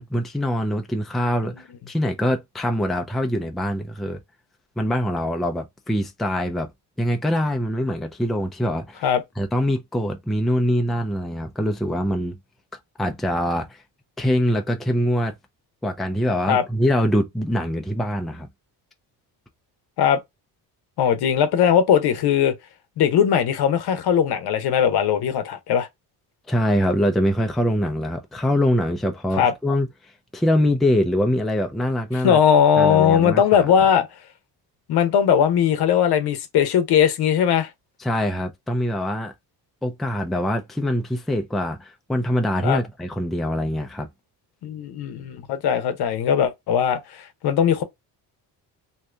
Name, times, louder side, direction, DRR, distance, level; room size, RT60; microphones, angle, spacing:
voice 1, 0.0-4.2 4.8-6.7 7.0-9.1 9.4-12.4 13.0-13.8 14.2-15.3 15.8-18.5 26.5-32.4 32.8-33.7 38.0-39.3 39.8-44.1, equal, ahead, 0.4 m, -24 dB
voice 2, 21.0-22.5 23.0-25.9 29.4-29.5 32.2-34.1 34.9-37.7 42.6-42.8 44.6-47.8, left 8 dB, 70° left, 0.8 m, -19 dB
2.8 x 2.5 x 3.1 m
cardioid pair, 90°, 41 cm